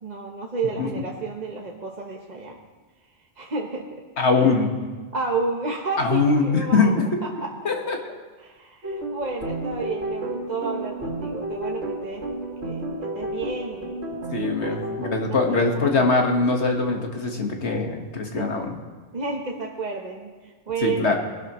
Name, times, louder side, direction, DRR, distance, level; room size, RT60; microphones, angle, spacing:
voice 1, 0.0-2.6 3.4-4.0 4.3-4.5 5.1-7.5 8.4-12.3 12.6-14.0 14.6-14.8 15.3-16.2 18.3-18.5 19.1-21.2, right 4 dB, 40° right, 1 dB, 1.0 m, -31 dB
voice 2, 4.2-4.7 6.0-6.9 7.7-8.0 14.3-18.7 20.8-21.2, left 3 dB, 75° left, 2 dB, 1.8 m, -22 dB
sound 1, 8.8-15.2, right 1 dB, 80° right, 3.0 m, -31 dB
20.5 x 12.0 x 3.0 m, 1.4 s
omnidirectional pair, 1.2 m